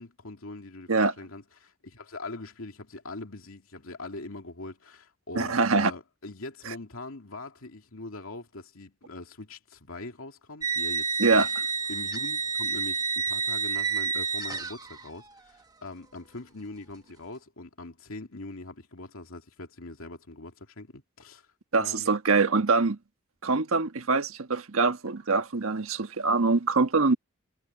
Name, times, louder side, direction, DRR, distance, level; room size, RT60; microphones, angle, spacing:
voice 1, 0.0-11.5 11.9-21.5 21.8-22.1, left 2 dB, 80° left, 2.5 m, -42 dB
voice 2, 5.3-5.9 11.2-11.5 21.7-23.0 23.4-27.1, right 3 dB, 80° right, 1.4 m, -24 dB
sound 1, 10.6-15.1, right 5 dB, 20° right, 1.2 m, -29 dB
head